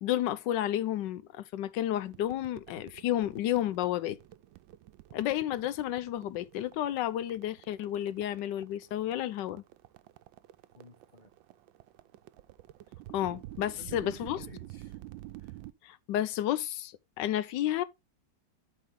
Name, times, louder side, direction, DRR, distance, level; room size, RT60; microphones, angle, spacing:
voice 1, 0.0-4.2 5.1-9.6 13.1-14.4 15.8-17.8, left 12 dB, 75° left, 1.2 m, -31 dB
sound 1, 2.0-15.7, right 16 dB, 90° right, 1.4 m, -50 dB
voice 2, 10.7-11.3 13.8-15.0 15.4-15.6, left 2 dB, 25° left, 1.5 m, -52 dB
12.5 x 4.4 x 3.6 m
omnidirectional pair, 2.0 m